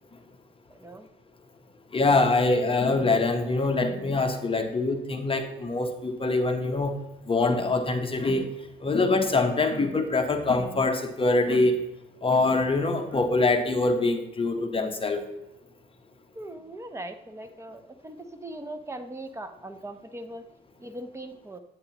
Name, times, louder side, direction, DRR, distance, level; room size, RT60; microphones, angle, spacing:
voice 1, 0.7-1.1 16.3-20.4 20.8-21.6, right 1 dB, 15° right, 7 dB, 0.8 m, -40 dB
voice 2, 1.9-6.9 7.3-8.5 8.8-11.8 12.2-15.2, left 3 dB, 25° left, 6 dB, 1.0 m, -24 dB
9.1 x 8.5 x 2.9 m, 0.92 s
cardioid pair, 90°, 20 cm